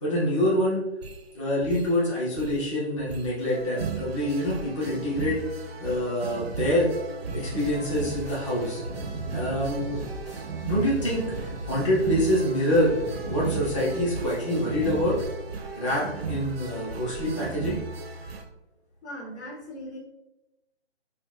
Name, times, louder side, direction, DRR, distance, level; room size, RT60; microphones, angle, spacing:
voice 1, 0.0-0.8 1.3-5.4 5.8-6.9 7.3-8.8 9.3-10.0 10.6-12.9 13.3-15.2 15.8-17.8, left 1 dB, 30° left, -8 dB, 0.8 m, -26 dB
sound 1, 1.0-1.2 1.6-2.0 2.4-2.7 3.0-18.4, right 5 dB, 65° right, 0.5 m, -36 dB
sound 2, 7.3-15.3, right 1 dB, 20° right, 0.6 m, -38 dB
voice 2, 19.0-20.0, equal, 80° left, -1 dB, 1.2 m, -39 dB
5.3 x 2.2 x 2.4 m, 0.98 s
hypercardioid pair, 175°, 33 cm